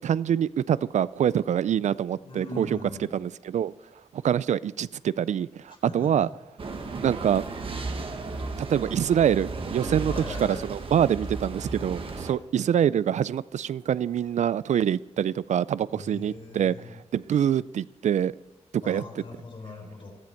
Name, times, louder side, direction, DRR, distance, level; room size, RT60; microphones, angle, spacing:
voice 1, 0.0-2.8 3.1-3.7 4.1-6.3 7.0-7.4 8.6-10.1 10.4-16.8 17.1-18.3 18.9-19.2, right 9 dB, 80° right, 19 dB, 0.4 m, -25 dB
voice 2, 2.2-3.1 5.8-6.3 10.1-10.7 15.9-16.9 18.8-20.2, left 2 dB, 50° left, 2 dB, 3.8 m, -40 dB
sound 1, 6.6-12.3, right 3 dB, 50° right, 1.4 m, -34 dB
15.5 x 13.5 x 4.5 m, 1.0 s
wide cardioid pair, 145°, 12 cm